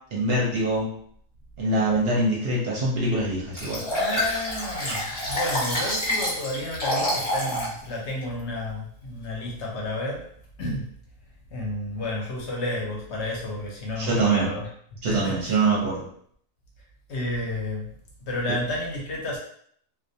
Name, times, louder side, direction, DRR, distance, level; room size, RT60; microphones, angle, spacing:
voice 1, 0.1-0.9 1.6-3.8 14.0-14.5 15.0-16.0, right 2 dB, 60° right, -4 dB, 0.7 m, -24 dB
Liquid, 3.6-7.7 8.2-8.3, equal, 25° left, 0.8 m, -27 dB
voice 2, 3.9-10.3 10.6-10.9 11.5-14.7 15.1-15.6 17.1-17.9 18.3-19.4, left 1 dB, 65° left, -2 dB, 0.8 m, -31 dB
2.3 x 2.1 x 2.6 m, 0.63 s
omnidirectional pair, 1.4 m